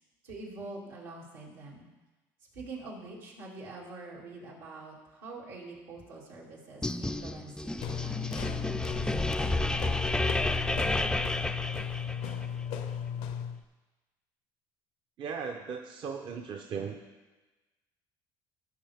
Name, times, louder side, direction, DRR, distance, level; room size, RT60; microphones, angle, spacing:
voice 1, 0.2-1.9 2.5-9.7, right 3 dB, 90° right, -5 dB, 2.6 m, -45 dB
sound 1, 6.8-12.5, left 2 dB, 5° left, 0.3 m, -31 dB
sound 2, 7.8-13.6, left 8 dB, 80° left, 0.6 m, -35 dB
voice 2, 15.2-17.0, right 6 dB, 55° right, 4 dB, 0.7 m, -37 dB
14.5 x 5.6 x 3.5 m, 1.2 s
supercardioid pair, 80°, 10 cm